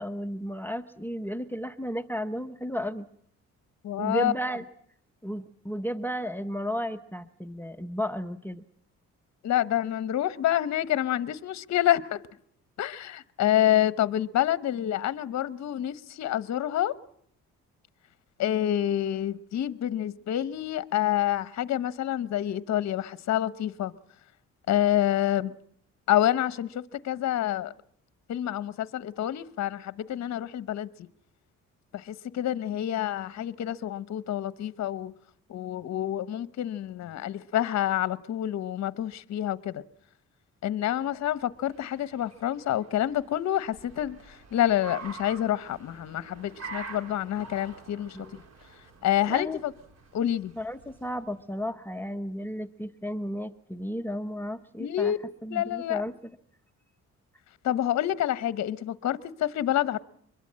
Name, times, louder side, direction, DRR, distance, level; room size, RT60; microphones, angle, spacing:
voice 1, 0.0-3.1 4.0-4.7 5.2-8.6 48.1-48.4 49.3-49.6 50.6-55.1 55.4-56.1, equal, 5° left, 0.9 m, -33 dB
voice 2, 3.8-4.3 9.4-12.2 12.8-16.9 18.4-23.9 24.7-25.5 26.1-27.7 28.3-30.9 31.9-35.1 35.5-39.8 40.6-48.2 49.0-49.5 50.1-50.5 54.8-55.2 55.5-56.0 57.6-60.0, left 12 dB, 60° left, 0.9 m, -27 dB
Car, 41.3-51.5, right 4 dB, 60° right, 4.4 m, -46 dB
23.5 x 21.5 x 7.5 m
cardioid pair, 90°, 30 cm